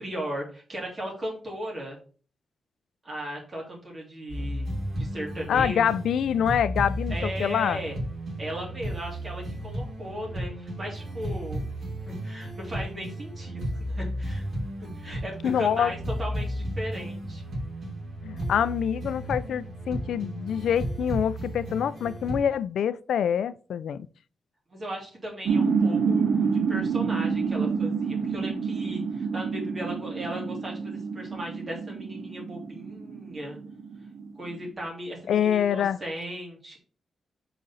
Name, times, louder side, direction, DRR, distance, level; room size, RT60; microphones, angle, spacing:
voice 1, 0.0-2.0 3.0-4.7 5.0-6.0 7.1-8.0 8.4-11.6 12.1-13.6 13.9-14.4 14.8-17.4 24.7-33.6 34.3-36.8, equal, 30° right, 2.4 m, -37 dB
sound 1, 4.3-22.4, equal, 50° right, 2.9 m, -34 dB
voice 2, 5.5-7.8 15.4-15.9 18.2-24.1 35.3-36.0, left 8 dB, 90° left, 0.3 m, -25 dB
sound 2, 25.5-34.7, right 5 dB, 75° right, 0.8 m, -28 dB
5.0 x 3.8 x 5.5 m
wide cardioid pair, 150°, 0 cm